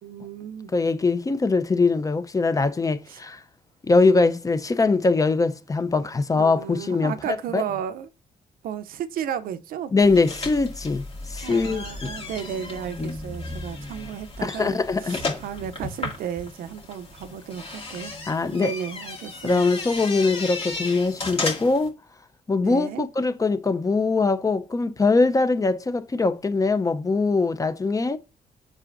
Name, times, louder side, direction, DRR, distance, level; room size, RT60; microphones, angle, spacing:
voice 1, 0.0-0.7 3.1-3.2 6.3-8.1 8.6-9.9 11.4-18.1 18.5-19.7 22.6-23.1, right 9 dB, 85° right, 0.6 m, -34 dB
voice 2, 0.7-3.4 3.8-7.6 9.9-11.0 11.3-12.1 13.0-13.1 13.5-13.6 14.4-15.2 18.3-18.7 19.4-21.9 22.5-28.2, left 3 dB, 25° left, 0.6 m, -22 dB
sound 1, 10.0-21.9, left 3 dB, 45° left, 2.2 m, -35 dB
7.3 x 6.0 x 2.5 m
cardioid pair, 105°, 15 cm